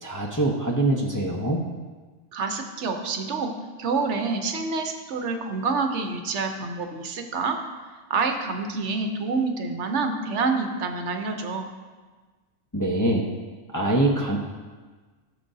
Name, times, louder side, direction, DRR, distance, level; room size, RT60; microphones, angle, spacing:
voice 1, 0.0-1.6 12.7-13.3 13.7-14.4, right 1 dB, 20° left, -2 dB, 0.6 m, -23 dB
voice 2, 2.3-3.5 3.8-7.6 8.1-11.7, right 4 dB, 70° right, 5 dB, 1.1 m, -27 dB
14.0 x 6.7 x 2.7 m, 1.4 s
omnidirectional pair, 1.3 m